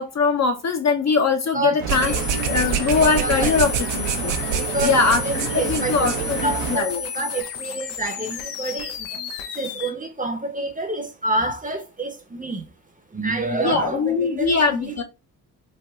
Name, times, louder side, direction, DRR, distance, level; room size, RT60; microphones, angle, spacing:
voice 1, 0.0-4.3 4.8-7.0 13.6-15.0, left 5 dB, 35° left, 0.6 m, -22 dB
sound 1, 1.8-6.8, right 8 dB, 65° right, 0.6 m, -26 dB
sound 2, 1.9-9.9, left 7 dB, 80° left, 0.6 m, -32 dB
voice 2, 2.0-2.6 2.9-3.6 4.5-9.2 9.5-12.7 13.1-15.0, right 2 dB, 15° right, 0.6 m, -28 dB
3.4 x 2.2 x 2.3 m
hypercardioid pair, 40°, 47 cm